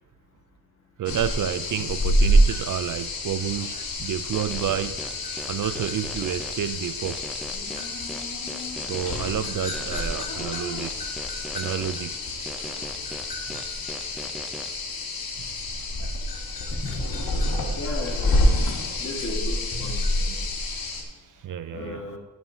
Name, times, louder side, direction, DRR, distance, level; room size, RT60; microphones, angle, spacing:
voice 1, 1.0-5.1 5.5-7.2 8.9-11.0 11.5-12.2 15.4-15.7 16.0-16.1 21.4-22.1, right 10 dB, 60° right, 13 dB, 0.5 m, -30 dB
sound 1, 1.1-21.0, equal, 70° left, 1.7 m, -27 dB
sound 2, 4.3-6.5 7.0-9.3 9.7-12.0 12.5-14.7, equal, ahead, 0.5 m, -39 dB
voice 2, 17.8-18.6 19.0-19.9 21.7-22.2, left 2 dB, 35° left, 0 dB, 1.8 m, -34 dB
14.5 x 7.6 x 2.8 m, 1.0 s
wide cardioid pair, 110°, 37 cm